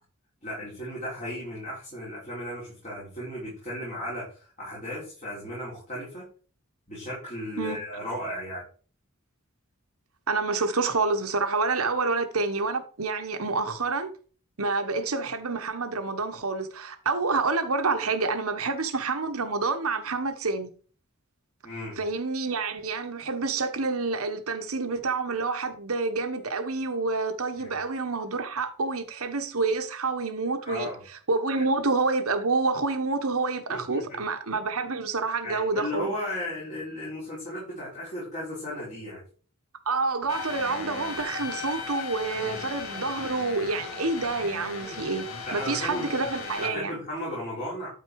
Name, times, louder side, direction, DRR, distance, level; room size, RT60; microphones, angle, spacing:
voice 1, 0.4-6.3 6.9-8.6 21.6-22.0 27.6-27.8 30.6-31.0 33.7-34.2 35.4-39.2 42.4-42.7 45.5-46.1 46.6-47.9, left 1 dB, 35° left, 4.9 m, -35 dB
voice 2, 10.3-14.1 14.6-20.7 22.0-30.9 31.3-36.2 39.8-47.0, right 3 dB, 80° right, 1.3 m, -28 dB
sound 1, 40.3-46.7, left 4 dB, 75° left, 1.6 m, -37 dB
12.0 x 4.4 x 4.8 m
head